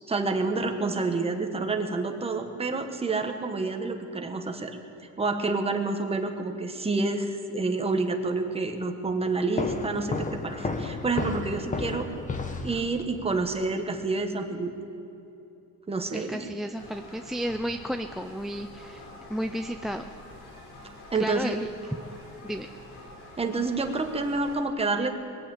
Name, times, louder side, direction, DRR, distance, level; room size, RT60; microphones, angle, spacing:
voice 1, 0.1-4.8 5.2-12.1 12.6-14.7 15.9-16.5 21.1-21.5 23.4-25.1, right 3 dB, 20° right, 5 dB, 1.3 m, -28 dB
sound 1, 9.6-13.3, left 3 dB, 25° left, 1.1 m, -32 dB
voice 2, 16.1-20.0 21.2-22.0 22.4-22.7, equal, ahead, 8 dB, 0.3 m, -33 dB
sound 2, 16.7-24.6, left 2 dB, 55° left, 3.5 m, -47 dB
22.0 x 7.6 x 8.7 m, 2.9 s
cardioid pair, 130°, 33 cm